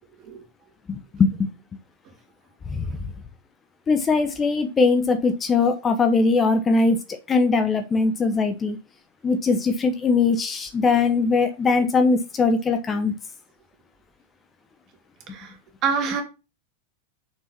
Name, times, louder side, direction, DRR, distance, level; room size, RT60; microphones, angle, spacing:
voice 1, 0.9-1.5 2.7-2.9 3.9-7.0 7.3-8.8 9.2-13.1, left 4 dB, 20° left, 1.1 m, -21 dB
voice 2, 15.8-16.2, right 6 dB, 35° right, 2.4 m, -25 dB
6.9 x 6.1 x 6.0 m
figure-of-eight pair, 90°, 0 cm